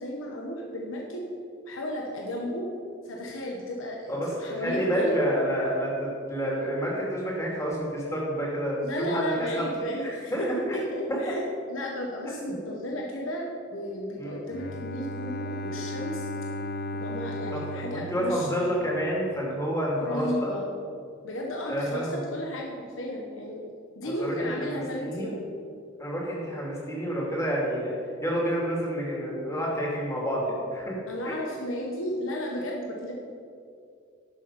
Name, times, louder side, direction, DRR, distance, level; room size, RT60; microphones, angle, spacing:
voice 1, 0.0-1.2 1.7-2.7 3.0-5.2 8.8-11.4 11.7-16.3 16.9-18.6 20.0-20.7 21.2-23.6 24.0-25.5 31.1-33.1, equal, 80° left, -1 dB, 1.2 m, -33 dB
voice 2, 4.1-9.6 10.0-10.8 11.1-11.4 14.2-14.4 17.5-17.6 17.9-20.5 21.7-22.2 24.0-25.3 26.0-28.0 28.2-31.0 31.2-31.4, equal, 15° left, -4 dB, 2.5 m, -29 dB
Bowed string instrument, 14.5-19.3, left 1 dB, 50° left, 0.5 m, -35 dB
11.0 x 6.8 x 5.5 m, 2.4 s
head